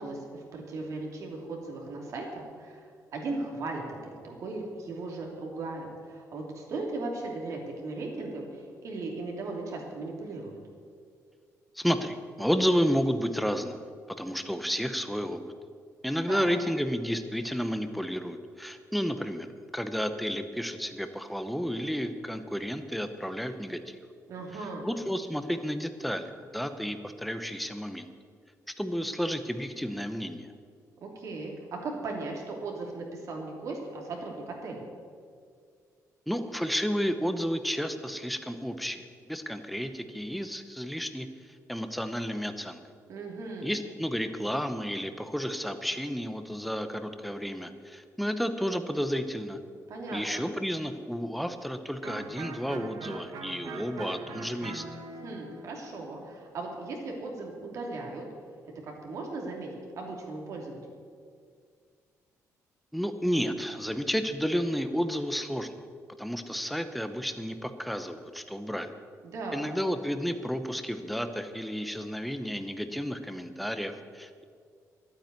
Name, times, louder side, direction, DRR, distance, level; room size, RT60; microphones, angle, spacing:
voice 1, 0.0-10.6 16.3-16.6 24.3-24.9 31.0-34.8 43.1-43.7 49.9-50.4 55.1-58.2 58.8-59.7 60.0-60.8 69.2-69.7, right 3 dB, 60° right, 0 dB, 2.9 m, -37 dB
voice 2, 11.8-13.8 14.1-15.4 16.0-19.5 19.7-24.0 24.8-28.1 28.8-30.5 36.3-41.3 41.7-42.8 43.6-49.6 50.1-54.8 62.9-65.7 66.2-68.9 69.5-74.4, equal, ahead, 9 dB, 0.8 m, -31 dB
Electric guitar, 52.0-57.6, right 5 dB, 75° right, 1.3 m, -43 dB
12.0 x 8.9 x 9.5 m, 2.1 s
cardioid pair, 155°, 6 cm